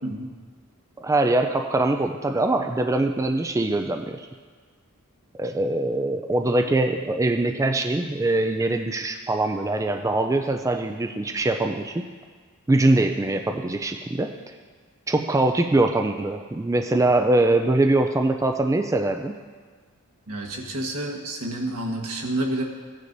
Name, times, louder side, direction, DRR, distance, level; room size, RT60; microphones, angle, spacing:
voice 1, 1.0-4.3 5.3-12.0 12.7-14.3 15.1-19.3, right 2 dB, 15° right, 5 dB, 0.3 m, -23 dB
voice 2, 20.3-22.6, right 1 dB, 80° right, 0 dB, 1.4 m, -29 dB
15.0 x 9.6 x 2.6 m, 1.5 s
head